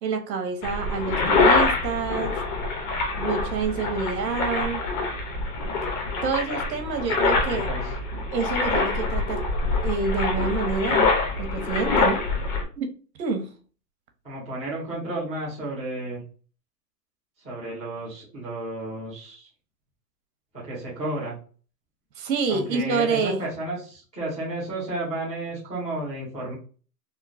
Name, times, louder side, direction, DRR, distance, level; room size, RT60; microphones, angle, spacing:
voice 1, 0.0-2.4 3.2-4.8 6.2-7.7 8.3-9.4 9.8-11.0 11.4-12.3 12.8-12.9 13.2-13.5 22.2-23.4, right 4 dB, 80° right, 1.1 m, -27 dB
sound 1, 0.6-12.6, left 3 dB, 30° left, 0.7 m, -25 dB
voice 2, 6.8-7.9 14.2-16.2 17.4-19.5 20.5-21.3 22.5-26.5, right 1 dB, 5° left, 0.3 m, -32 dB
3.7 x 2.2 x 2.5 m
hypercardioid pair, 150°, 50 cm